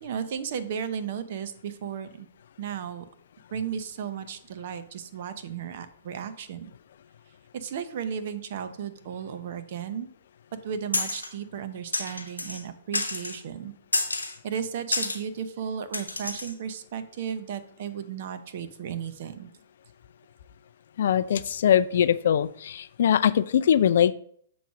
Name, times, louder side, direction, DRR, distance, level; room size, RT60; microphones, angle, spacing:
voice 1, 0.0-2.3 2.6-3.1 3.5-6.7 7.5-10.1 10.5-13.7 14.4-19.5, right 8 dB, 55° right, 10 dB, 0.7 m, -34 dB
sound 1, 10.9-11.3 11.9-12.6 12.9-13.4 13.9-14.4 14.9-15.2 15.9-16.5, left 2 dB, 90° left, 0.9 m, -29 dB
voice 2, 21.0-24.1, left 9 dB, 60° left, 15 dB, 0.3 m, -22 dB
7.0 x 3.1 x 6.0 m, 0.64 s
figure-of-eight pair, 115°, 0 cm